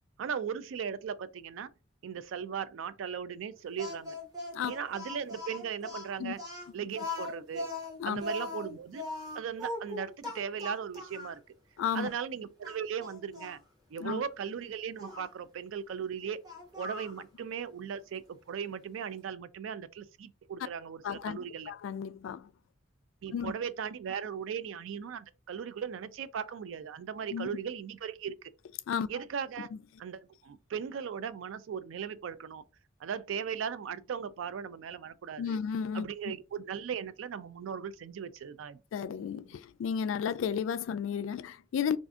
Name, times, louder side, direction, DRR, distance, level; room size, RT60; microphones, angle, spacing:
voice 1, 0.2-1.7 2.0-4.2 4.7-6.4 6.7-7.7 8.1-9.1 9.3-11.4 11.9-13.6 13.9-16.4 16.8-21.7 23.2-28.4 29.1-29.7 30.0-32.6 33.0-35.6 35.9-38.8, right 7 dB, 80° right, 0.3 m, -38 dB
Speech, 3.8-11.4 12.0-12.1 12.6-13.6 15.0-15.3 16.4-17.2, left 2 dB, 20° right, 0.8 m, -40 dB
voice 2, 11.8-12.1 14.0-14.2 21.0-21.4 21.7-22.5 23.3-23.5 27.3-27.5 28.9-29.1 35.4-36.1 38.9-42.0, left 7 dB, 80° left, 0.3 m, -33 dB
2.5 x 2.5 x 3.5 m
head